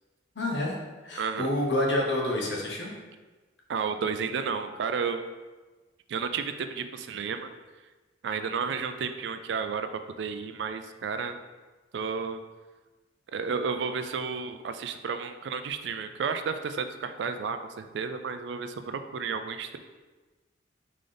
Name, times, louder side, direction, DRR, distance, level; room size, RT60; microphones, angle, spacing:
voice 1, 0.4-0.8 1.0-2.9, left 1 dB, 70° left, -2 dB, 0.9 m, -28 dB
voice 2, 1.2-1.5 3.7-5.2 6.1-7.5 8.2-11.4 11.9-12.4 13.3-19.8, right 5 dB, 70° right, 9 dB, 0.3 m, -32 dB
3.9 x 3.8 x 3.3 m, 1.3 s
head